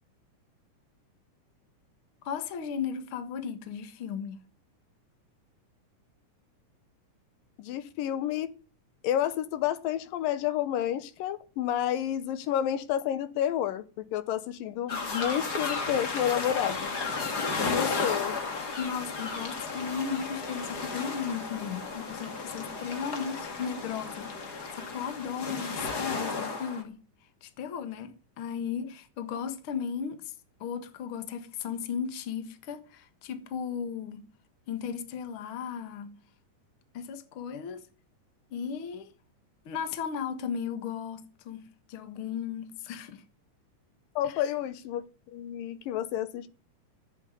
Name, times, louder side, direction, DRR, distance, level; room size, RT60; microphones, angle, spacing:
voice 1, 2.2-4.4 17.1-18.0 18.7-27.0 27.4-30.4 30.6-34.3 34.7-36.2 36.9-37.8 38.5-39.1 39.7-43.2 44.2-44.4, left 7 dB, 50° left, 1.8 m, -36 dB
voice 2, 7.6-8.5 9.0-16.9 17.7-18.4 44.2-45.1 45.3-46.5, left 11 dB, 85° left, 2.7 m, -30 dB
sound 1, 14.9-26.8, left 4 dB, 35° left, 2.1 m, -34 dB
14.5 x 8.1 x 9.6 m
omnidirectional pair, 3.9 m